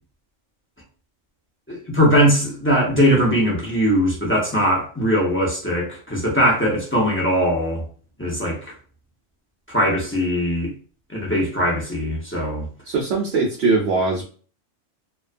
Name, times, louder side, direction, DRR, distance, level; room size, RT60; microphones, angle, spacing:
voice 1, 1.7-7.8 8.2-8.7 9.7-10.7 11.1-12.7, equal, 15° left, -3 dB, 0.4 m, -20 dB
voice 2, 12.8-14.2, right 3 dB, 60° right, -1 dB, 0.8 m, -21 dB
2.4 x 2.2 x 2.4 m, 0.40 s
omnidirectional pair, 1.3 m